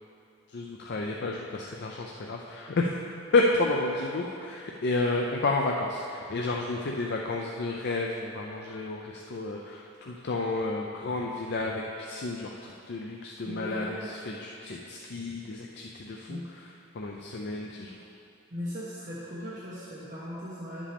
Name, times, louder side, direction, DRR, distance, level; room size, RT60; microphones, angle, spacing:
voice 1, 0.5-3.0 3.3-16.4 16.9-18.0, left 2 dB, 60° left, 0 dB, 0.5 m, -31 dB
voice 2, 13.4-14.2 16.3-16.4 18.5-20.9, equal, 40° right, -9 dB, 1.3 m, -38 dB
11.0 x 7.4 x 3.5 m, 2.6 s
head